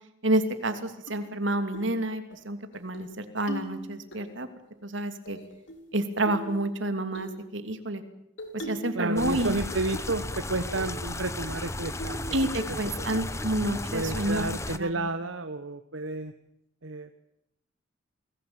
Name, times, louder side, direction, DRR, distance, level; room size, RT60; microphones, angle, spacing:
voice 1, 0.2-4.5 4.8-5.4 5.9-8.0 8.5-9.5 12.3-15.0, right 1 dB, 70° right, 8 dB, 2.9 m, -29 dB
sound 1, 1.1-1.2 1.7-1.9 2.3-2.4 2.7-3.1 3.5-4.2 5.3-5.9 6.3-6.6 7.1-7.4 8.4-9.0 9.3-10.0 10.3-10.4 10.8-11.0 11.4-11.5 12.0-12.3 12.6-13.0, equal, 65° left, 4.9 m, -39 dB
voice 2, 8.9-12.2 13.0-13.1 13.9-16.3 16.8-17.2, right 2 dB, 90° right, 9 dB, 1.3 m, -31 dB
sound 2, 9.2-14.8, left 2 dB, 15° left, 1.0 m, -34 dB
29.0 x 20.0 x 8.9 m, 0.81 s
head